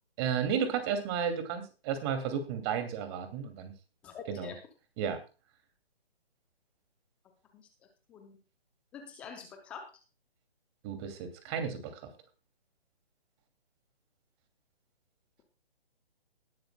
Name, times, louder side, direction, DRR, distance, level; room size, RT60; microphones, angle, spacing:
voice 1, 0.2-3.7 4.3-4.5 5.0-5.2 10.8-12.0, right 7 dB, 25° right, 7 dB, 2.5 m, -33 dB
voice 2, 4.0-4.5 7.5-7.6 8.1-8.4 8.9-9.9, left 6 dB, 5° left, 4 dB, 0.5 m, -45 dB
19.0 x 10.5 x 2.2 m, 0.32 s
figure-of-eight pair, 145°, 31 cm